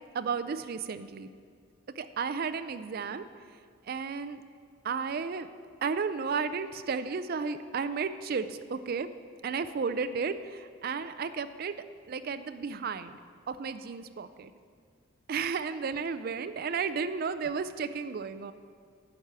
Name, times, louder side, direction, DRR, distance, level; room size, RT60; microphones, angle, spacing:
voice 1, 0.1-1.3 2.0-3.2 3.9-4.4 4.8-5.5 5.8-9.1 9.4-11.7 12.1-13.2 13.5-14.5 15.3-18.5, right 5 dB, 45° right, 12 dB, 0.4 m, -33 dB
10.5 x 4.8 x 6.8 m, 2.1 s
head